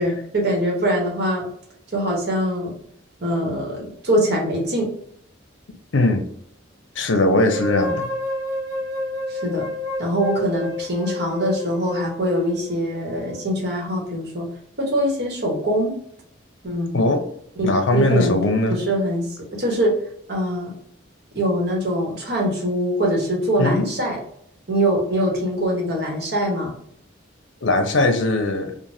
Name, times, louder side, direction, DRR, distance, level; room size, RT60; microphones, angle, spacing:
voice 1, 0.0-1.4 1.9-2.7 3.2-4.9 9.3-9.7 10.0-14.5 14.8-15.9 16.6-17.0 17.6-18.4 18.7-20.0 20.3-20.7 21.3-24.2 24.7-26.7, equal, 55° right, 1.0 m, -23 dB
voice 2, 5.9-6.3 7.0-8.1 16.9-17.2 17.6-18.8 23.6-23.9 27.6-28.7, left 2 dB, 75° left, 0.6 m, -19 dB
sound 1, 7.5-13.5, left 1 dB, 20° left, 0.7 m, -30 dB
3.3 x 2.1 x 2.6 m
head